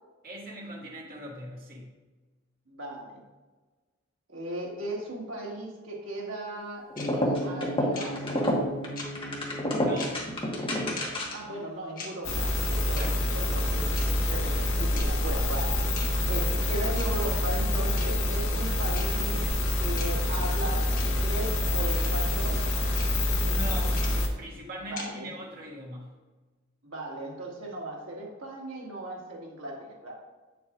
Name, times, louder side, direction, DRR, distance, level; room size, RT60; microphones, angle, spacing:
voice 1, 0.2-1.9 9.5-10.2 12.8-13.3 23.3-24.0 24.4-26.2, right 1 dB, 45° right, -4 dB, 2.0 m, -41 dB
voice 2, 2.7-3.2 4.3-8.6 11.3-15.8 16.2-19.4 19.8-22.6 24.9-25.3 26.8-30.1, right 1 dB, 85° right, -3 dB, 1.9 m, -37 dB
sound 1, 6.9-11.5, equal, 25° left, 1.3 m, -29 dB
sound 2, 7.0-7.1 7.9-8.1 9.0-9.1 10.0-10.1 11.0-11.1 12.0-12.1 13.0-13.1 14.0-14.1 15.0-15.1 16.0-16.1 17.0-17.1 18.0-18.1 18.9-19.1 20.0-20.1 21.0-21.1 22.0-22.1 23.0-23.1 24.0-24.1 25.0-25.1, left 4 dB, 45° left, 1.3 m, -39 dB
sound 3, 12.2-24.3, left 1 dB, 85° left, 1.2 m, -27 dB
8.6 x 7.0 x 2.4 m, 1.3 s
head